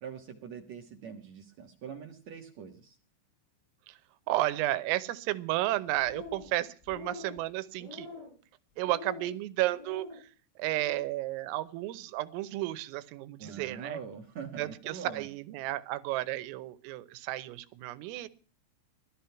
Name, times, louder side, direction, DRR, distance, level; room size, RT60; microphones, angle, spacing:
voice 1, 0.0-3.0 13.4-15.3, right 7 dB, 70° right, 2 dB, 1.6 m, -43 dB
voice 2, 4.3-8.1 8.8-10.3 10.6-14.0 14.6-18.3, right 16 dB, 90° right, 14 dB, 3.6 m, -32 dB
sound 1, 5.9-6.6 6.8-7.4 7.8-8.4 8.8-9.3 9.7-10.2 10.6-11.1, left 3 dB, 70° left, 9.7 m, -45 dB
17.0 x 13.0 x 5.7 m, 0.42 s
omnidirectional pair, 5.8 m